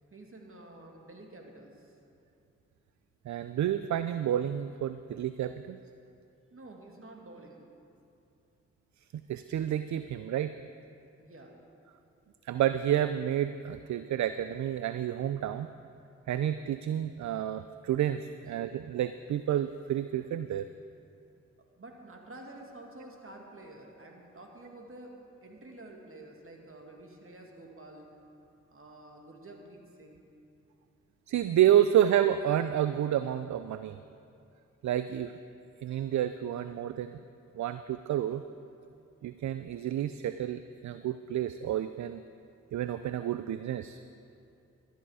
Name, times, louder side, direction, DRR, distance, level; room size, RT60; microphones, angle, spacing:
voice 1, 0.1-2.0 6.5-7.7 11.2-11.6 21.6-28.1 28.7-30.3, right 2 dB, 45° right, 1 dB, 2.1 m, -49 dB
voice 2, 3.3-5.8 9.3-10.5 12.5-15.7 16.3-20.7 31.3-34.0 34.8-35.3 35.8-37.2 37.5-38.4 39.2-42.2 42.7-44.0, right 11 dB, 70° right, 11 dB, 0.4 m, -29 dB
13.0 x 10.5 x 4.9 m, 2.6 s
supercardioid pair, 40°, 30 cm